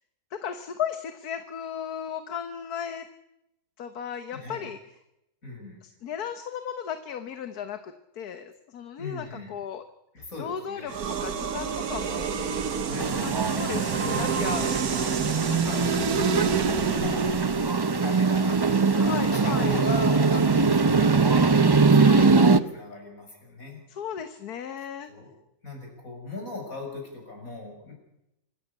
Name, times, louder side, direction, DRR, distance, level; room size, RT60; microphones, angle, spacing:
voice 1, 0.3-3.1 3.8-4.8 5.8-9.8 10.4-12.4 13.2-15.2 15.5-15.8 18.9-19.8 22.0-22.4 23.9-25.1, left 8 dB, 75° left, 9 dB, 1.7 m, -36 dB
voice 2, 4.3-4.7 5.4-5.8 9.0-9.6 10.1-11.0 12.8-13.2 15.7-16.4 16.9-17.5 18.0-23.8 25.1-25.3 25.6-27.9, left 2 dB, 60° left, 2 dB, 6.9 m, -38 dB
sound 1, 10.9-17.8, right 6 dB, 70° right, 1.7 m, -29 dB
sound 2, 13.0-22.6, right 4 dB, 30° right, 0.4 m, -22 dB
25.5 x 13.5 x 8.4 m, 0.85 s
omnidirectional pair, 1.6 m